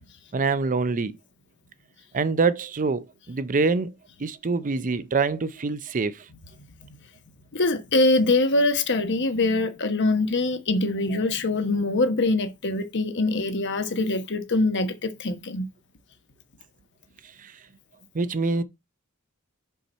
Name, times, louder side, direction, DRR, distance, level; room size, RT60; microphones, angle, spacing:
voice 1, 0.3-1.2 2.1-3.9 4.2-6.3 11.1-11.2 17.4-17.5 18.1-18.6, right 4 dB, 40° right, 0.5 m, -25 dB
voice 2, 7.5-15.7, left 2 dB, 55° left, 1.1 m, -23 dB
5.9 x 5.5 x 4.2 m
head